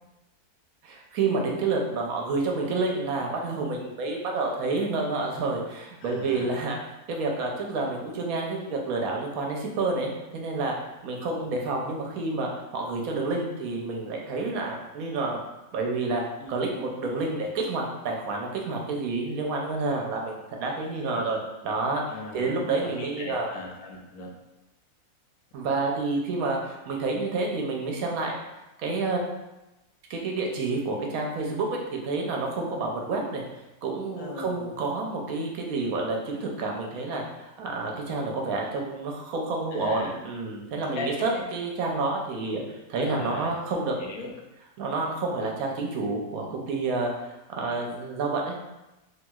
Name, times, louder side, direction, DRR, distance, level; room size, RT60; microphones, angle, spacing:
voice 1, 0.8-6.8 7.1-10.7 11.0-15.4 15.7-16.2 16.5-22.0 22.3-23.5 25.5-28.4 28.8-29.3 30.1-33.4 33.8-43.9 44.8-48.6, right 3 dB, 75° right, 0 dB, 1.0 m, -29 dB
voice 2, 6.0-6.6 16.4-16.5 22.1-24.3 34.2-34.7 39.7-40.2 40.9-41.4 42.9-43.5 44.0-44.3, left 3 dB, 75° left, -1 dB, 1.0 m, -39 dB
3.1 x 2.9 x 2.2 m, 0.98 s
omnidirectional pair, 1.6 m